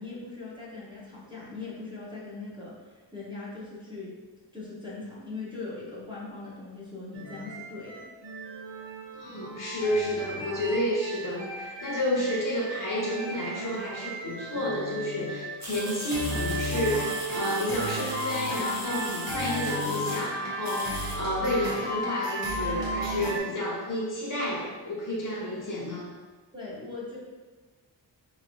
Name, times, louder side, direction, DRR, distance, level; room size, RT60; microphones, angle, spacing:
voice 1, 0.0-4.1 4.5-8.1 25.4-25.6 26.5-27.2, left 3 dB, 10° right, -8 dB, 0.9 m, -40 dB
Medieval Life - Minstrels and Jugglers, 7.1-23.4, right 1 dB, 85° right, 1.0 m, -34 dB
voice 2, 9.1-26.1, left 1 dB, 50° left, -4 dB, 1.0 m, -30 dB
sound 1, 15.6-20.2 20.6-21.2, right 1 dB, 40° right, 0.9 m, -39 dB
4.1 x 3.1 x 2.6 m, 1.3 s
wide cardioid pair, 120°, 42 cm